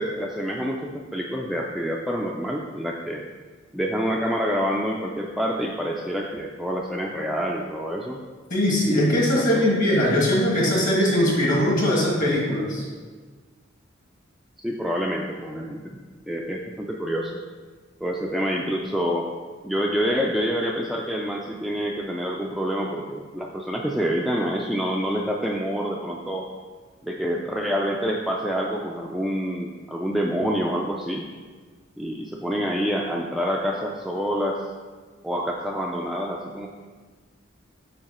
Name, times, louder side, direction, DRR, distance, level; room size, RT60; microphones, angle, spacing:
voice 1, 0.0-3.2 3.7-8.2 9.0-9.8 14.6-16.0 16.3-17.4 18.0-19.3 19.6-26.5 27.0-31.2 32.0-34.6 35.2-36.7, equal, ahead, -2 dB, 0.3 m, -27 dB
voice 2, 8.5-12.8, left 1 dB, 40° left, -3 dB, 1.6 m, -21 dB
8.5 x 2.9 x 4.2 m, 1.5 s
head